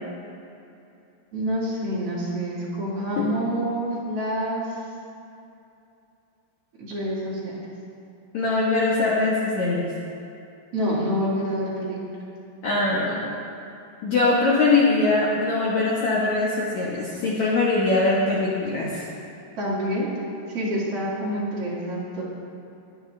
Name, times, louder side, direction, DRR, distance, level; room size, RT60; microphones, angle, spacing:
voice 1, 1.3-4.7 6.8-7.6 10.7-12.0 19.6-20.1 20.5-22.2, equal, 45° right, -7 dB, 2.3 m, -27 dB
voice 2, 8.3-9.8 12.6-13.2 14.0-19.1, left 3 dB, 75° left, -6 dB, 1.7 m, -22 dB
21.0 x 7.3 x 3.3 m, 2.7 s
omnidirectional pair, 5.0 m